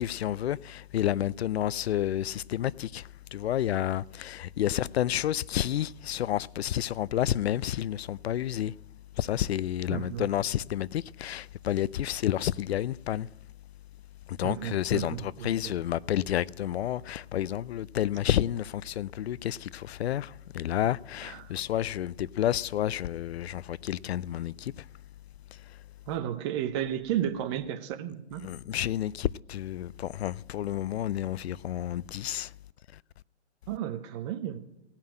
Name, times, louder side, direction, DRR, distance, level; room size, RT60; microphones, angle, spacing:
voice 1, 0.0-8.7 9.2-13.3 14.3-24.9 25.5-25.8 28.4-32.5 32.9-33.0, left 11 dB, 65° left, 0.4 m, -30 dB
voice 2, 9.9-10.3 14.4-15.7 21.2-21.5 26.1-28.5 33.7-34.6, right 10 dB, 25° right, 0.8 m, -33 dB
17.0 x 5.7 x 8.9 m
hypercardioid pair, 140°, 34 cm